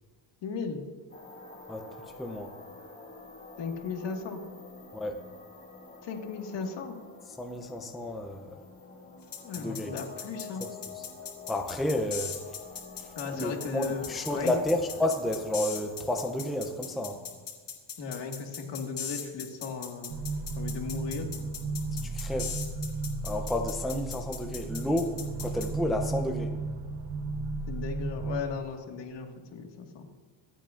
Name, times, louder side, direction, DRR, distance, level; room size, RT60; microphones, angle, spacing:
voice 1, 0.4-0.8 3.6-4.4 6.0-7.0 9.4-10.6 13.2-14.5 18.0-20.3 20.6-21.3 27.7-30.1, left 5 dB, 65° left, 3 dB, 1.8 m, -36 dB
sound 1, 1.1-17.4, left 4 dB, 20° left, 2.3 m, -48 dB
voice 2, 2.2-2.5 4.9-5.1 7.4-8.6 9.6-9.9 11.5-12.4 13.0-17.2 22.1-22.6 23.2-26.5, left 1 dB, ahead, 3 dB, 0.5 m, -31 dB
sound 2, 9.3-25.7, left 7 dB, 45° left, 2.6 m, -39 dB
sound 3, 20.1-28.4, right 3 dB, 55° right, 1.1 m, -34 dB
26.0 x 9.1 x 2.5 m, 1.5 s
cardioid pair, 160°, 47 cm